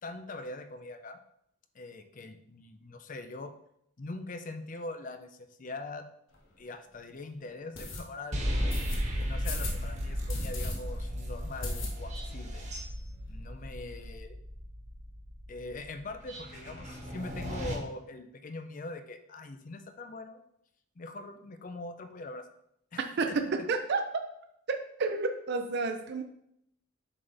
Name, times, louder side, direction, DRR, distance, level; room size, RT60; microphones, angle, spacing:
voice 1, 0.0-1.2 1.7-3.5 4.0-6.1 6.6-8.7 9.2-12.7 13.3-14.4 15.5-20.4 21.0-22.5 22.9-23.0 23.3-23.4, left 2 dB, 40° left, 8 dB, 0.5 m, -42 dB
sound 1, 6.3-6.4 6.9-7.0 7.7-8.0 8.7-9.0 9.4-9.8 10.3-10.7 11.1-11.2 11.6-12.3 12.6-12.7 13.0-13.1 13.3-13.9, left 2 dB, 70° left, 1.2 m, -37 dB
sound 2, 8.3-17.7, equal, 35° right, 1.3 m, -35 dB
voice 2, 23.2-24.0 24.7-26.2, right 3 dB, 55° right, 6 dB, 0.5 m, -30 dB
7.4 x 4.0 x 3.3 m, 0.75 s
head